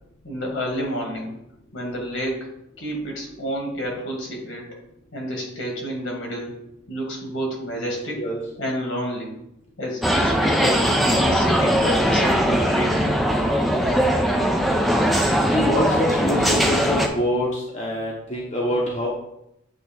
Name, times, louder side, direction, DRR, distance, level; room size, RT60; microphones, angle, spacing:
voice 1, 0.2-1.3 1.7-2.5 2.8-4.7 5.1-6.5 6.9-8.2 8.6-9.3 9.8-13.1, equal, 70° left, 0 dB, 1.7 m, -29 dB
sound 1, 10.0-17.1, equal, ahead, 0.4 m, -20 dB
voice 2, 15.5-19.1, left 1 dB, 35° left, -3 dB, 0.9 m, -25 dB
8.3 x 2.8 x 4.3 m, 0.82 s
head